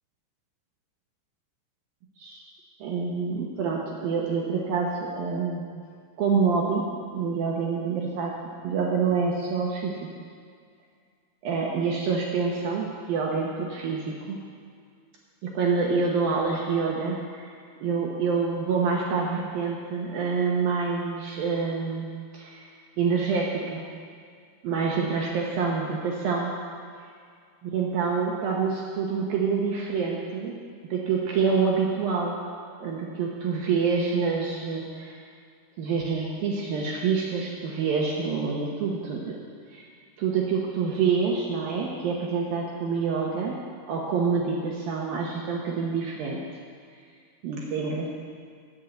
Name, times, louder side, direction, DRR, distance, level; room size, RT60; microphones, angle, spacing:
voice 1, 2.8-5.7 6.2-6.8 7.1-8.3 8.6-10.1 11.4-14.4 15.4-17.5 17.8-22.1 22.3-22.7 23.0-23.8 24.6-26.5 27.7-30.6 30.8-32.4 32.8-35.2 35.8-39.4 39.7-39.8 40.2-43.6 43.9-46.4 47.4-48.1, right 5 dB, 70° right, -2 dB, 2.2 m, -27 dB
10.0 x 9.9 x 8.0 m, 2.2 s
omnidirectional pair, 5.6 m